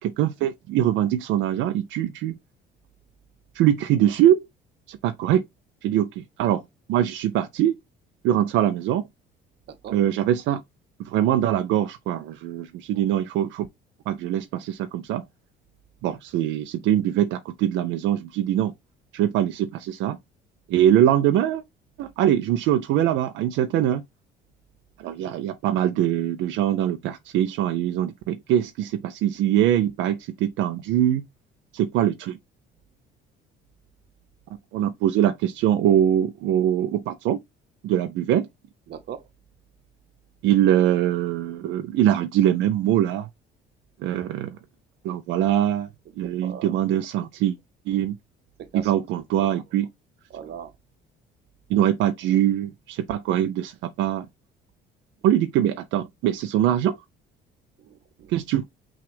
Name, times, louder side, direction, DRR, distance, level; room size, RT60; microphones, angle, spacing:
voice 1, 0.0-2.4 3.5-4.5 4.9-5.4 5.8-6.6 6.9-7.8 8.2-9.1 9.9-10.6 11.0-13.7 14.1-15.2 16.0-18.7 19.1-20.2 20.7-21.6 22.0-24.0 25.0-31.2 31.7-32.4 34.7-37.4 37.8-38.5 40.4-43.3 44.0-44.6 45.0-45.9 46.2-47.6 47.9-48.1 48.7-49.9 51.7-54.3 55.2-57.0 58.3-58.6, right 11 dB, 75° right, 0.4 m, -23 dB
voice 2, 38.9-39.2 46.2-46.7 48.7-49.0 50.3-50.7 57.9-58.3, right 8 dB, 60° right, 0.8 m, -39 dB
5.8 x 2.3 x 3.3 m
cardioid pair, 100°, 19 cm